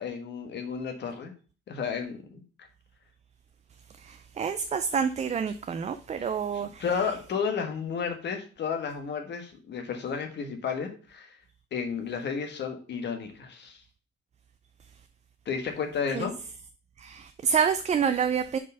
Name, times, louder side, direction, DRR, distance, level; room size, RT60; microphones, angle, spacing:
voice 1, 0.0-1.3 1.7-2.4 6.2-11.4 11.7-13.8 15.4-16.3, left 6 dB, 60° left, 1.4 m, -32 dB
voice 2, 4.0-6.8 16.1-16.3 17.0-18.6, right 7 dB, 35° right, 0.4 m, -28 dB
5.0 x 4.3 x 5.4 m
cardioid pair, 90°, 20 cm